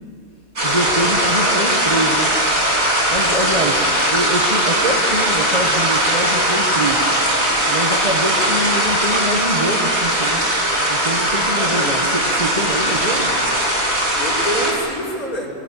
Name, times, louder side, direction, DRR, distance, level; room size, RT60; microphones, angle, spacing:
voice 1, 0.6-2.4 3.1-7.1 7.7-10.5 10.9-13.4, right 1 dB, 30° right, 2 dB, 1.4 m, -24 dB
sound 1, 0.6-14.7, right 1 dB, 75° right, 6.1 m, -19 dB
voice 2, 3.6-4.0 8.3-8.7 11.5-12.0 14.1-15.5, equal, 85° left, -3 dB, 5.2 m, -28 dB
25.0 x 20.5 x 8.4 m, 2.6 s
omnidirectional pair, 1.5 m